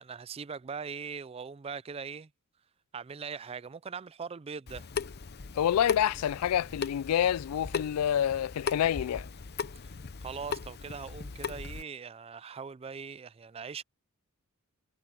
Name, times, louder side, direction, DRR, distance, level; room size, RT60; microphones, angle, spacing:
voice 1, 0.0-2.3 2.9-4.8 10.2-13.8, right 5 dB, 25° right, 0.4 m, -41 dB
Water tap faucet / Sink (filling or washing) / Drip, 4.7-11.8, left 5 dB, 45° left, 0.7 m, -38 dB
voice 2, 5.5-9.3, left 10 dB, 80° left, 0.3 m, -27 dB
head